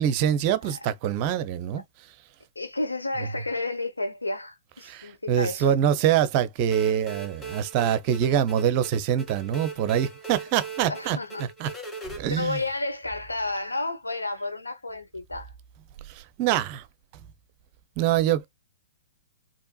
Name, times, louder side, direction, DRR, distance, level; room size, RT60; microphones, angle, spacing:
voice 1, 0.0-1.8 4.8-11.7 12.2-12.6 16.1-16.9 18.0-18.5, right 10 dB, 40° right, 0.6 m, -25 dB
voice 2, 2.5-5.7 10.9-11.4 12.3-15.5, left 2 dB, 90° left, 1.0 m, -31 dB
sound 1, 6.7-12.2, right 5 dB, 15° left, 2.4 m, -39 dB
4.5 x 2.9 x 2.3 m
figure-of-eight pair, 115°, 0 cm